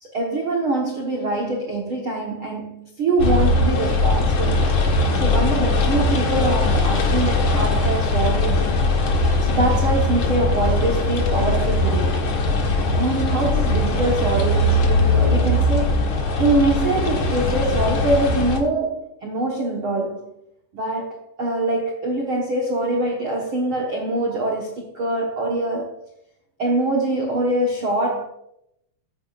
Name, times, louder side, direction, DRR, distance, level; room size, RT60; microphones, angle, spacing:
voice 1, 0.0-4.7 5.1-8.8 9.4-12.2 13.0-16.0 16.4-20.3 20.7-25.9 26.6-28.2, right 2 dB, 90° right, 1.1 m, -24 dB
sound 1, 3.2-18.6, left 2 dB, 80° left, 1.1 m, -20 dB
14.0 x 10.5 x 2.5 m
omnidirectional pair, 4.9 m